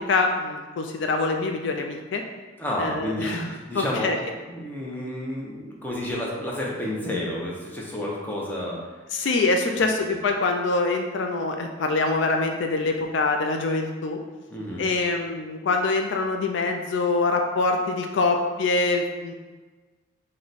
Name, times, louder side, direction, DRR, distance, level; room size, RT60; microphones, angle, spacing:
voice 1, 0.0-2.2 2.8-3.5 3.7-4.2 9.1-14.2 14.8-19.3, left 3 dB, 65° left, 3 dB, 0.3 m, -24 dB
voice 2, 2.6-9.0 10.1-10.2 14.5-14.9, left 1 dB, 10° left, -4 dB, 0.6 m, -30 dB
4.6 x 2.2 x 3.9 m, 1.3 s
head